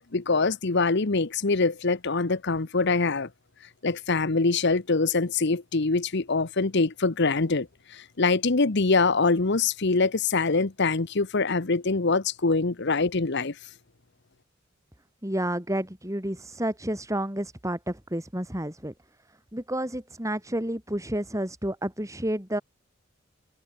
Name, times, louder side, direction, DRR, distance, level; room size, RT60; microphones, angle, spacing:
voice 1, 0.1-3.3 3.8-7.7 8.2-13.5, left 3 dB, 55° left, 1.0 m, -24 dB
voice 2, 15.2-18.9 19.5-22.6, right 1 dB, 15° right, 5.4 m, -30 dB
head